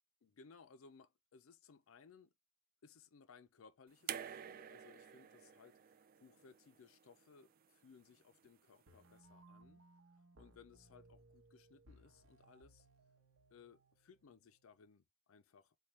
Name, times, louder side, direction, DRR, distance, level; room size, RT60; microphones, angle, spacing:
voice 1, 0.2-2.3 2.8-9.8 10.4-12.9 13.5-15.8, left 5 dB, 75° left, 0.5 m, -63 dB
sound 1, 4.1-7.2 8.4-8.5, right 9 dB, 45° right, 0.3 m, -49 dB
sound 2, 8.9-14.9, right 2 dB, 75° right, 0.9 m, -65 dB
4.4 x 2.3 x 3.1 m
head